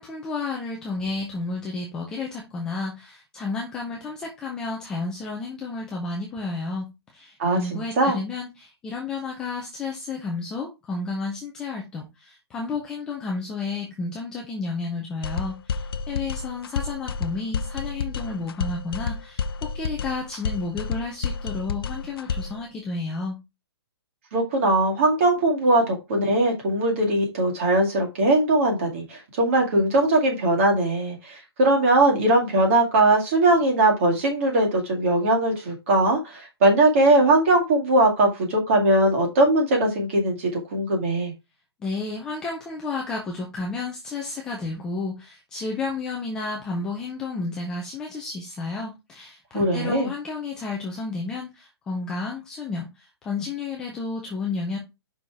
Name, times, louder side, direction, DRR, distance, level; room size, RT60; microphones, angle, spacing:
voice 1, 0.0-6.9 7.1-23.4 41.8-54.8, left 3 dB, 5° left, 0.4 m, -31 dB
voice 2, 7.4-8.2 24.3-41.3 49.5-50.1, right 2 dB, 30° right, 2.1 m, -20 dB
sound 1, 15.2-22.6, left 5 dB, 60° left, 0.6 m, -30 dB
5.6 x 4.9 x 4.6 m
hypercardioid pair, 175°, 14 cm